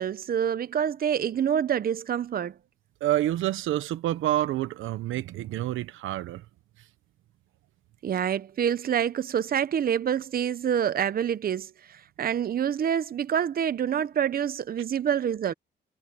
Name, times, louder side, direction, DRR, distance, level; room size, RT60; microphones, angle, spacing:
voice 1, 0.0-2.5 8.0-15.5, right 8 dB, 50° right, 0.9 m, -27 dB
voice 2, 3.0-6.4, right 14 dB, 85° right, 1.0 m, -28 dB
cardioid pair, 90°, 20 cm